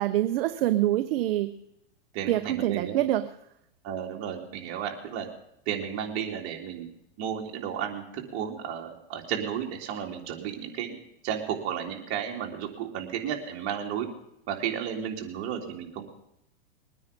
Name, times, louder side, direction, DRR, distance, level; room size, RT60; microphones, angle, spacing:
voice 1, 0.0-1.5 2.3-3.3, right 14 dB, 60° right, 9 dB, 0.9 m, -25 dB
voice 2, 2.1-3.0 3.8-5.3 5.6-6.9 7.2-14.1 14.5-16.0, right 8 dB, 45° right, 1 dB, 3.3 m, -33 dB
22.0 x 9.6 x 5.3 m, 0.79 s
hypercardioid pair, 130°, 32 cm